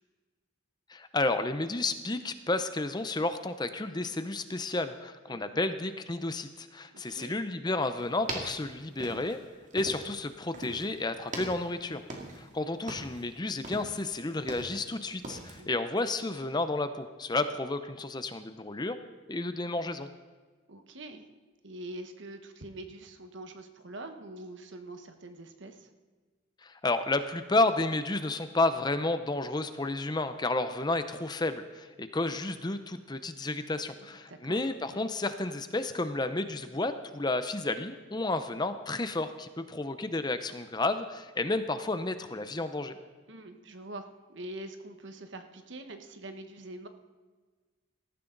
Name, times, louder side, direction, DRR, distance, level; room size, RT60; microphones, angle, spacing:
voice 1, 0.9-9.4 9.7-12.0 12.4-19.0 19.3-20.1 26.6-43.0, left 2 dB, 20° left, 10 dB, 0.6 m, -31 dB
voice 2, 5.3-5.7 6.9-7.4 15.6-15.9 20.7-21.3 21.6-25.9 34.0-34.6 43.3-46.9, right 1 dB, 65° right, 7 dB, 1.3 m, -44 dB
sound 1, 8.0-10.2 10.5-10.9 11.2-12.5 12.8-13.3 13.6-14.9 15.2-15.6, right 2 dB, 40° right, 2.2 m, -40 dB
18.5 x 14.0 x 3.9 m, 1.4 s
head